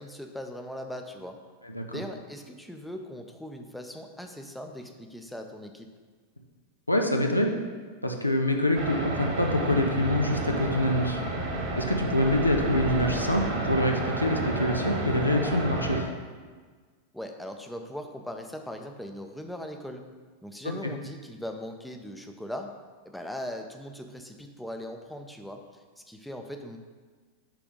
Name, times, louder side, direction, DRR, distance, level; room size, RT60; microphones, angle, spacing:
voice 1, 0.0-1.4 1.9-5.9 17.1-20.1 20.4-22.8 23.0-26.8, left 1 dB, ahead, 4 dB, 0.5 m, -39 dB
voice 2, 1.6-2.0 6.9-7.6 8.0-11.2 11.8-16.1, left 1 dB, 85° left, 3 dB, 0.5 m, -25 dB
sound 1, 8.7-16.0, right 2 dB, 45° right, 1.0 m, -31 dB
sound 2, 9.1-14.5, equal, 25° left, 1.2 m, -44 dB
6.0 x 3.4 x 5.2 m, 1.5 s
figure-of-eight pair, 90°, 0 cm